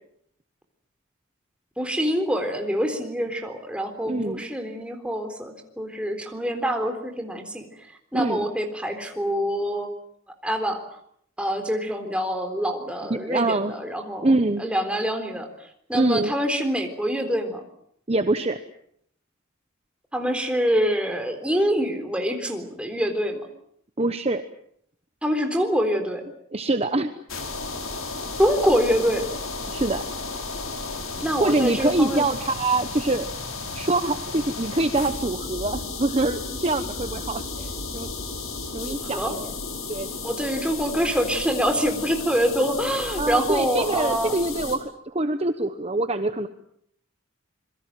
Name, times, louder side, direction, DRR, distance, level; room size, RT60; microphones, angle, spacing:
voice 1, 1.8-7.7 8.1-9.9 10.4-10.8 11.4-14.3 14.6-15.5 15.9-17.6 20.1-23.4 25.2-26.2 28.4-29.3 31.2-32.2 38.9-39.3 40.2-44.3, equal, 5° right, 4 dB, 3.8 m, -25 dB
voice 2, 4.0-4.4 8.1-8.5 13.1-13.7 14.2-14.6 15.9-16.3 18.1-18.6 24.0-24.4 26.5-27.1 29.7-30.0 31.4-33.3 33.7-38.1 38.7-39.5 39.9-40.1 43.2-46.5, right 2 dB, 30° right, 9 dB, 1.1 m, -24 dB
sound 1, 27.3-44.8, left 3 dB, 80° left, 5.3 m, -33 dB
27.0 x 22.5 x 7.7 m, 0.68 s
head